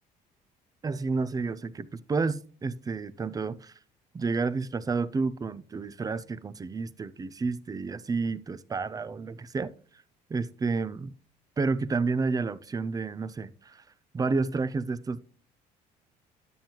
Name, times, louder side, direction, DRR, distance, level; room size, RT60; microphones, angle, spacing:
voice 1, 0.8-3.7 4.1-9.7 10.3-11.1 11.6-13.8 14.1-15.2, right 4 dB, 20° right, 0.5 m, -30 dB
9.4 x 8.9 x 2.9 m
cardioid pair, 110°, 17 cm